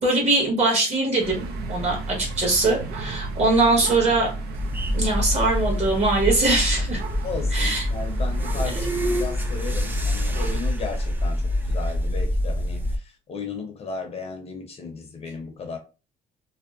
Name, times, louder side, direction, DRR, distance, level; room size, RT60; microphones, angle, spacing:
voice 1, 0.0-4.3 4.9-7.0 7.5-7.9, right 2 dB, 40° right, 1.3 m, -22 dB
sound 1, 1.2-10.6, right 2 dB, 75° right, 0.5 m, -33 dB
sound 2, 4.5-13.0, left 1 dB, 10° right, 0.4 m, -26 dB
voice 2, 7.2-15.8, left 4 dB, 35° left, 0.6 m, -35 dB
2.7 x 2.0 x 2.4 m
cardioid pair, 110°, 17 cm